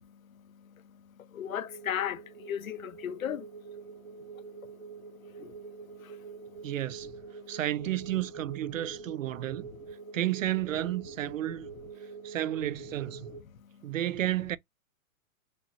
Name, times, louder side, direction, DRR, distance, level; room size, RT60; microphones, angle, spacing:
voice 1, 0.0-3.7 4.0-6.7 7.4-7.6 9.4-9.6 12.0-12.4 13.2-13.9, left 9 dB, 70° left, 1.0 m, -40 dB
sound 1, 1.4-13.4, right 5 dB, 35° right, 0.9 m, -46 dB
voice 2, 6.6-7.1 7.5-9.7 10.1-11.7 12.2-13.3 13.8-14.6, right 13 dB, 65° right, 0.5 m, -32 dB
6.4 x 3.0 x 2.7 m
hypercardioid pair, 175°, 43 cm